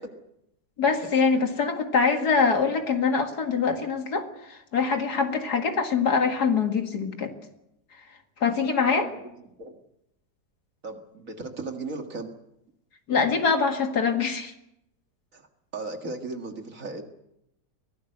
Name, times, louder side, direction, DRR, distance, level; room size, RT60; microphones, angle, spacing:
voice 1, 0.8-4.2 4.5-7.3 8.4-9.1 13.1-14.5, left 5 dB, 60° left, 5 dB, 2.5 m, -24 dB
voice 2, 8.8-9.8 10.8-12.3 15.3-15.4 15.7-17.0, right 3 dB, 50° right, 5 dB, 2.3 m, -37 dB
23.0 x 17.5 x 7.9 m, 0.83 s
omnidirectional pair, 1.9 m